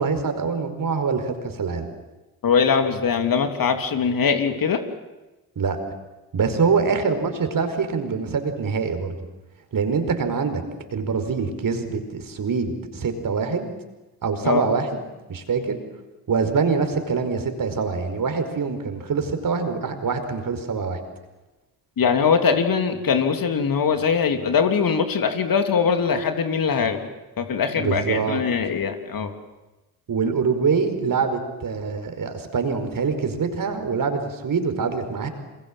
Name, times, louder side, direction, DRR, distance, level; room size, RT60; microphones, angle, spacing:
voice 1, 0.0-1.9 5.5-5.8 6.3-9.2 9.7-10.6 10.9-13.7 14.2-14.9 15.3-15.8 16.3-21.0 27.8-28.4 30.1-35.3, right 5 dB, 45° right, 8 dB, 5.0 m, -24 dB
voice 2, 2.4-4.8 14.4-14.6 22.0-27.0 27.4-29.3, left 6 dB, 45° left, 6 dB, 3.2 m, -21 dB
28.5 x 27.0 x 7.7 m, 1.1 s
hypercardioid pair, 45°, 46 cm